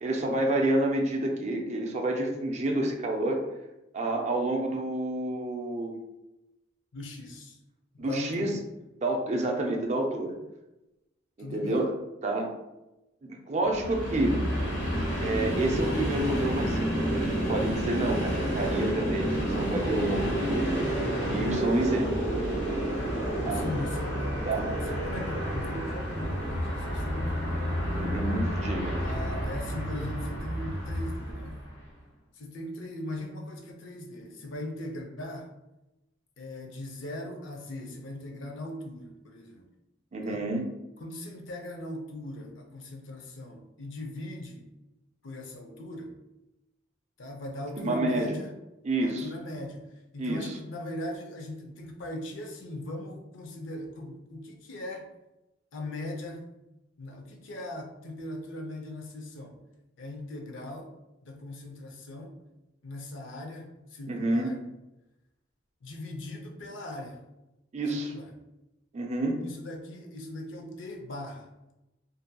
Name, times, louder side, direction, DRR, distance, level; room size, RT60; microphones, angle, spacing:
voice 1, 0.0-3.4 3.9-6.0 8.0-8.5 9.0-10.4 11.4-11.9 12.2-12.5 13.2-14.4 15.2-20.8 21.3-22.1 23.4-23.7 24.5-24.7 27.9-29.0 40.1-40.7 47.8-48.4 48.8-49.2 50.2-50.6 64.1-64.5 67.7-68.1 68.9-69.4, right 1 dB, 35° right, 2 dB, 0.4 m, -29 dB
voice 2, 6.9-7.6 7.9-8.6 11.4-11.8 23.5-24.3 24.9-27.4 29.0-31.6 32.3-35.5 36.4-39.7 40.2-40.5 41.0-44.7 45.2-46.2 47.2-48.5 49.0-49.9 50.1-55.1 55.7-56.5 57.0-59.6 60.0-60.9 61.2-62.3 62.8-64.6 65.8-67.2 67.9-68.3 69.4-71.5, left 1 dB, 90° left, 2 dB, 0.5 m, -39 dB
Train, 13.6-31.8, equal, 70° left, 1.3 m, -30 dB
2.6 x 2.6 x 2.2 m, 0.95 s
head